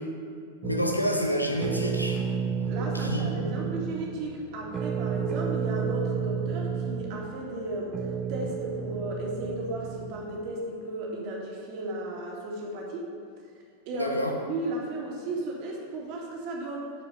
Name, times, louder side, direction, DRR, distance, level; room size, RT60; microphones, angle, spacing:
voice 1, 0.6-2.2 2.9-3.3 14.0-14.3, equal, 90° left, 2 dB, 1.0 m, -28 dB
sound 1, 0.6-10.5, right 6 dB, 25° right, 0.4 m, -32 dB
voice 2, 2.7-8.0 8.3-13.1 13.9-14.2 14.4-16.9, right 1 dB, 45° right, -2 dB, 2.2 m, -35 dB
10.5 x 4.9 x 6.8 m, 2.2 s
figure-of-eight pair, 90°, 0 cm